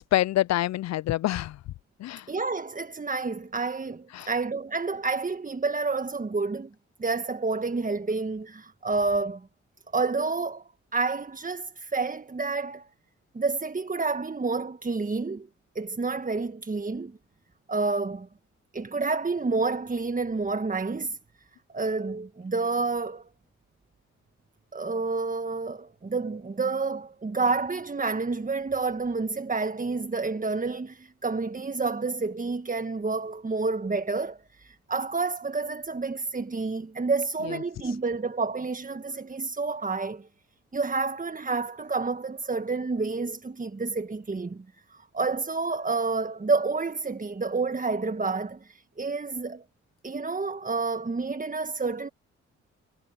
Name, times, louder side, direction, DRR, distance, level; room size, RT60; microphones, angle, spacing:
voice 1, 0.0-1.6 2.0-2.3 4.1-4.3 37.8-38.0, left 14 dB, 55° left, 0.5 m, -26 dB
voice 2, 2.3-6.7 7.0-9.4 9.9-10.6 10.9-12.9 13.3-15.5 15.7-17.1 17.7-18.3 18.7-21.2 21.7-23.2 24.7-40.3 40.7-44.6 45.1-49.6 50.0-52.1, right 4 dB, 25° right, 1.4 m, -29 dB
hypercardioid pair, 45°, 33 cm